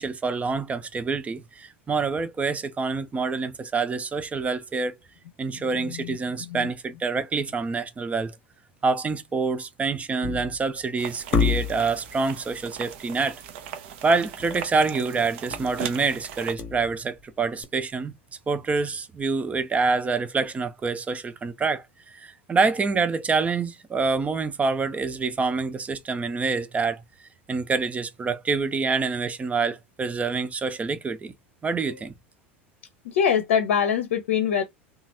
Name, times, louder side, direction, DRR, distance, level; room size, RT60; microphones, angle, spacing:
voice 1, 0.0-4.9 5.4-8.4 8.8-13.4 14.0-18.1 18.5-27.0 27.5-31.3 31.6-32.1, right 4 dB, 20° right, 0.5 m, -26 dB
voice 2, 5.8-6.2 6.5-6.7 33.0-34.6, left 8 dB, 65° left, 0.6 m, -24 dB
sound 1, 10.2-10.7 11.3-12.0 14.4-14.6 14.9-15.0 15.5-15.8 16.3-17.2 17.6-17.7, left 6 dB, 35° left, 0.9 m, -27 dB
sound 2, 11.0-16.5, right 9 dB, 60° right, 0.7 m, -38 dB
2.9 x 2.4 x 2.9 m
figure-of-eight pair, 80°, 7 cm